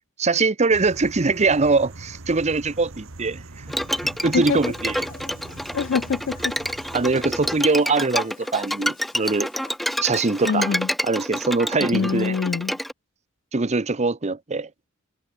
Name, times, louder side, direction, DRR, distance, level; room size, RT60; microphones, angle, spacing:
voice 1, 0.2-3.4 4.0-5.0 6.9-9.5 10.0-10.7 11.0-12.3 13.5-14.7, right 3 dB, 30° right, 0.8 m, -22 dB
sound 1, 0.7-7.7, right 2 dB, 65° right, 1.6 m, -41 dB
Bowed string instrument, 3.7-12.9, equal, ahead, 1.2 m, -28 dB
sound 2, 4.4-9.8, left 5 dB, 40° left, 2.3 m, -49 dB
voice 2, 5.7-6.5 10.4-10.9 11.9-12.7, left 6 dB, 55° left, 0.4 m, -24 dB
head